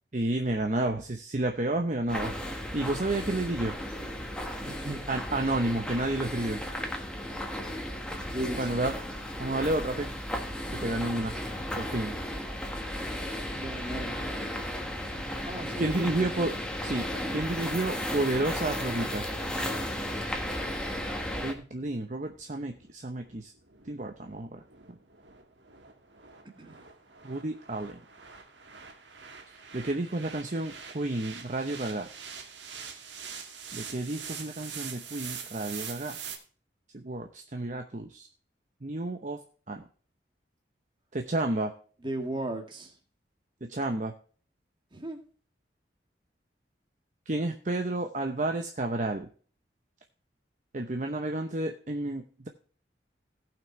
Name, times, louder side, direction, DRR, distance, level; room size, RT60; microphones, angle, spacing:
voice 1, 0.1-2.3 2.7-3.7 5.1-6.6 8.6-8.9 9.4-10.1 10.7-11.3 11.8-12.1 15.8-16.6 16.8-19.3 21.4-23.5 23.9-24.6 27.2-28.0 29.5-32.1 33.7-36.2 36.9-38.3 38.8-39.4 39.7-39.8 41.1-41.7 43.7-44.1 47.3-49.3 50.7-52.5, right 2 dB, 45° right, 0.8 m, -31 dB
sound 1, 2.1-21.5, equal, 5° left, 1.4 m, -34 dB
voice 2, 4.6-5.0 8.3-8.9 13.5-14.3 15.4-16.3 26.6-26.8 42.0-43.0 44.9-45.2, right 1 dB, 25° right, 1.8 m, -36 dB
sound 2, 21.7-36.4, right 6 dB, 85° right, 1.9 m, -44 dB
17.5 x 6.0 x 3.2 m
head